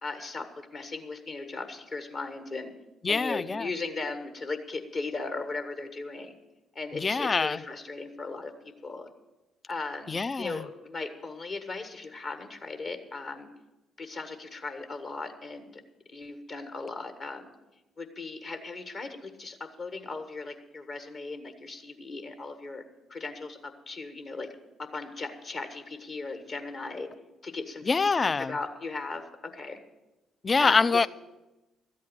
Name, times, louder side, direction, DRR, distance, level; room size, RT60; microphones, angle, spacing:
voice 1, 0.0-2.7 3.1-6.3 6.7-8.5 8.8-9.1 9.7-13.5 14.0-15.8 16.1-17.5 18.0-22.8 23.1-24.5 24.8-27.1 27.4-29.8 30.6-31.1, left 3 dB, 50° left, 1.5 m, -37 dB
voice 2, 3.0-3.7 6.9-7.6 10.1-10.6 27.9-28.6 30.4-31.1, left 4 dB, 35° left, 0.4 m, -25 dB
13.0 x 8.4 x 8.0 m
figure-of-eight pair, 45°, 0 cm